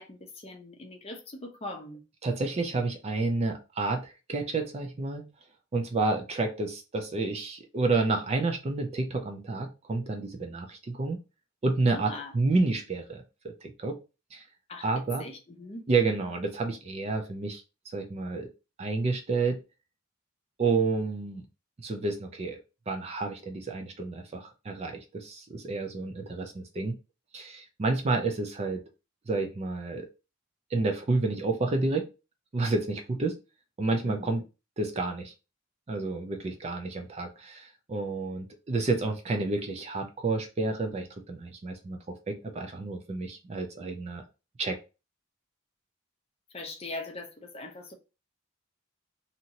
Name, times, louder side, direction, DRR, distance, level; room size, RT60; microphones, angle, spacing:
voice 1, 0.0-2.0 11.9-12.3 14.7-14.9 15.2-15.8 34.0-34.4 46.5-47.9, left 2 dB, 30° left, 0.5 m, -41 dB
voice 2, 2.2-5.3 5.7-11.2 11.6-14.0 14.3-14.4 14.8-15.2 15.9-17.6 17.9-18.5 18.8-19.6 20.6-21.4 21.8-27.0 27.3-28.8 29.3-30.1 30.7-32.1 32.5-33.4 33.8-34.4 34.8-35.3 35.9-44.2 44.6-44.8, right 3 dB, 30° right, 0.4 m, -30 dB
2.8 x 2.6 x 2.7 m
head